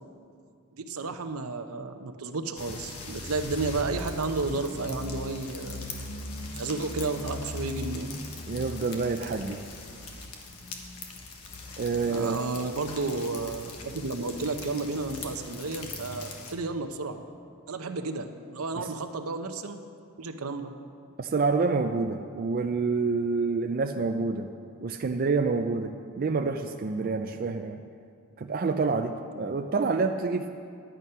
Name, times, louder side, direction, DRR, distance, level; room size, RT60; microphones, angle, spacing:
voice 1, 0.7-5.8 6.5-8.1 11.9-17.2 17.7-19.8 20.2-20.7, right 3 dB, 80° right, 7 dB, 0.8 m, -32 dB
sound 1, 2.6-16.5, left 2 dB, 85° left, 1.3 m, -40 dB
voice 2, 8.5-9.6 11.8-12.4 18.8-18.9 21.2-24.5 24.8-27.8 28.4-30.5, right 4 dB, 40° right, 5 dB, 0.4 m, -28 dB
11.0 x 9.1 x 5.5 m, 2.3 s
head